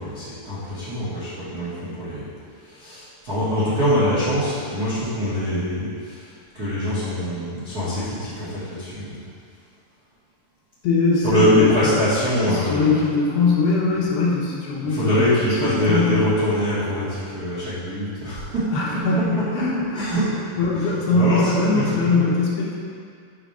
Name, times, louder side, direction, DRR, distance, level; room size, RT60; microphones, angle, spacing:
voice 1, 0.0-2.3 2.7-6.3 6.5-9.2 11.2-13.0 14.0-14.1 14.8-18.6 19.1-19.6 19.9-20.4 20.7-22.3, equal, 85° right, -12 dB, 0.8 m, -23 dB
voice 2, 10.8-11.9 12.4-16.2 18.7-20.1 20.6-22.8, left 3 dB, 80° left, -4 dB, 3.2 m, -21 dB
9.9 x 3.4 x 5.7 m, 2.2 s
omnidirectional pair, 4.8 m